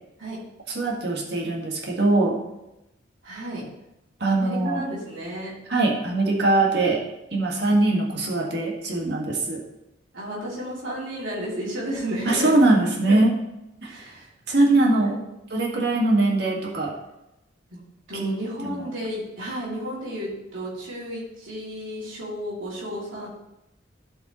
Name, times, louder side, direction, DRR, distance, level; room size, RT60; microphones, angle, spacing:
voice 1, 0.7-2.4 4.2-4.8 5.7-7.0 7.3-9.6 12.3-13.3 13.8-14.1 14.5-15.2 15.5-16.9 18.1-18.3 18.6-18.9, right 2 dB, 55° right, -2 dB, 1.8 m, -22 dB
voice 2, 3.2-3.6 4.3-5.5 10.1-12.5 13.1-13.2 13.9-15.2 17.7-17.8 18.1-23.3, equal, 85° right, -7 dB, 2.8 m, -33 dB
12.5 x 5.5 x 3.1 m, 0.90 s
head